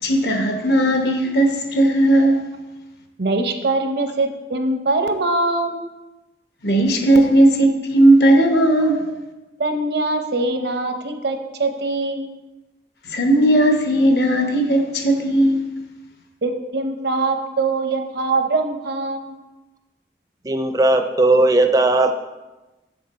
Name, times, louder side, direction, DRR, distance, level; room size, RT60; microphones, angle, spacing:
voice 1, 0.0-2.4 6.6-9.0 13.0-15.6, right 1 dB, 70° left, 4 dB, 1.0 m, -16 dB
voice 2, 3.2-5.9 9.6-12.3 16.4-19.4, right 2 dB, 70° right, 6 dB, 0.8 m, -23 dB
voice 3, 20.4-22.1, right 2 dB, 20° right, 7 dB, 0.4 m, -16 dB
6.8 x 6.7 x 4.2 m, 1.1 s
head